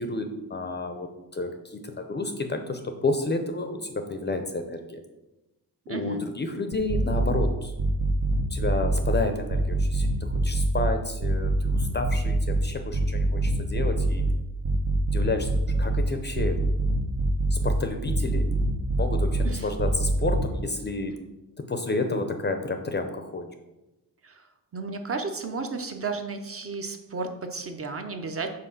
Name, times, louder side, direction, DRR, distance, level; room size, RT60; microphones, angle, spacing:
voice 1, 0.0-5.0 5.9-7.7 8.5-14.2 15.1-15.5 15.8-16.6 17.5-18.5 19.0-21.2 21.6-23.5, left 2 dB, 25° left, 6 dB, 0.5 m, -30 dB
voice 2, 5.9-6.2 19.4-19.7 24.2-28.5, right 4 dB, 35° right, 6 dB, 0.7 m, -33 dB
sound 1, 6.7-7.5 7.8-9.2 9.5-10.9 11.2-12.6 12.9-14.3 14.6-16.0 16.3-17.7 18.1-19.5 19.8-20.4, right 3 dB, 70° right, 1.0 m, -24 dB
5.7 x 4.7 x 6.4 m, 1.0 s
wide cardioid pair, 180°, 41 cm